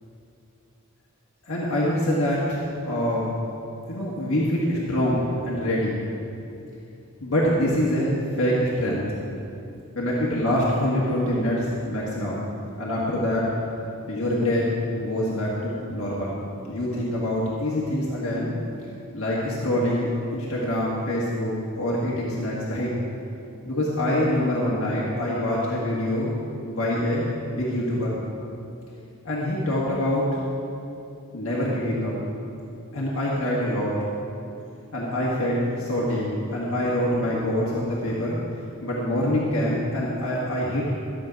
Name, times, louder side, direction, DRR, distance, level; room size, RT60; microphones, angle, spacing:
voice 1, 1.5-3.3 3.9-6.0 7.2-9.1 9.9-12.4 12.8-13.5 14.1-16.3 16.7-18.5 19.1-22.9 23.6-26.3 26.6-28.1 29.2-30.3 31.3-32.1 32.9-33.9 34.9-38.4 38.8-40.9, left 1 dB, 65° left, -6 dB, 1.6 m, -25 dB
12.5 x 7.7 x 5.2 m, 2.7 s
head